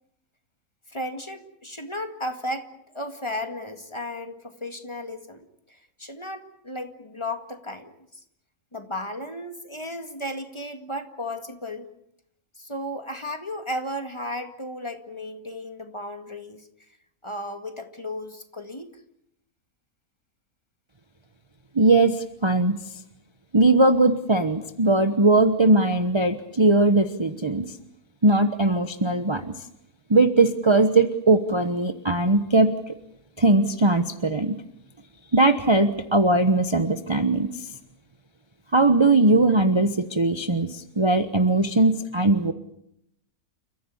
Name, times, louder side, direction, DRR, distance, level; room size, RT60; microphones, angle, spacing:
voice 1, 0.9-8.2 8.7-11.9 12.6-16.7 17.2-18.9, left 1 dB, 20° left, 7 dB, 2.0 m, -34 dB
voice 2, 21.7-22.8 23.5-27.7 28.2-29.5 30.1-33.0 33.4-34.6 35.3-37.7 38.7-42.5, right 2 dB, 20° right, 8 dB, 1.0 m, -20 dB
29.5 x 15.0 x 9.9 m, 0.78 s
omnidirectional pair, 1.6 m